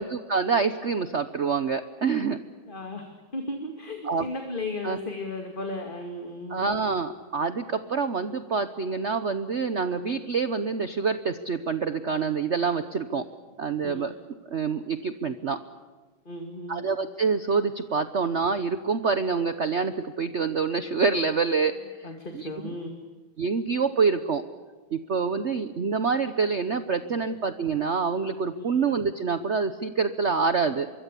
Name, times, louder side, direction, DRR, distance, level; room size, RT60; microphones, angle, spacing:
voice 1, 0.0-2.4 4.0-4.3 4.8-5.0 6.5-13.2 13.6-14.1 14.5-15.6 16.7-22.7 23.4-24.4 24.9-30.9, right 5 dB, 50° right, 11 dB, 0.9 m, -26 dB
voice 2, 2.7-6.7 13.8-14.1 16.3-16.8 22.0-23.0 28.6-28.8, left 2 dB, 25° left, 4 dB, 2.3 m, -35 dB
25.5 x 23.0 x 8.4 m, 1.4 s
omnidirectional pair, 2.2 m